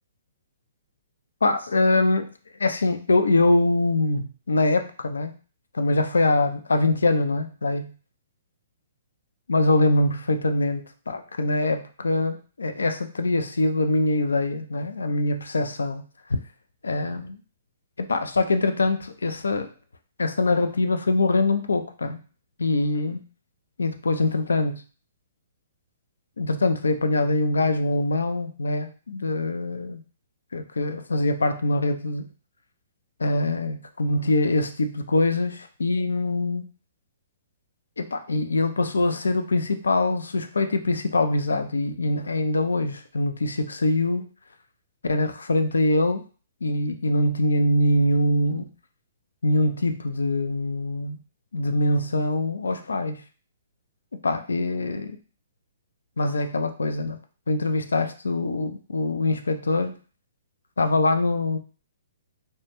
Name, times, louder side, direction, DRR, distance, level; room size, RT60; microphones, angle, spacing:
voice 1, 1.4-2.3 2.6-5.3 5.7-7.9 9.5-16.0 16.8-17.4 18.0-19.7 20.2-22.2 22.6-23.2 23.8-24.8 26.4-30.0 30.5-32.3 33.2-36.7 38.0-44.3 45.1-46.2 46.6-48.7 49.4-51.2 51.5-53.2 54.2-55.2 56.2-57.2 57.5-60.0 60.8-61.6, left 2 dB, 80° left, 8 dB, 0.3 m, -23 dB
2.1 x 2.1 x 2.9 m, 0.38 s
hypercardioid pair, 130°, 0 cm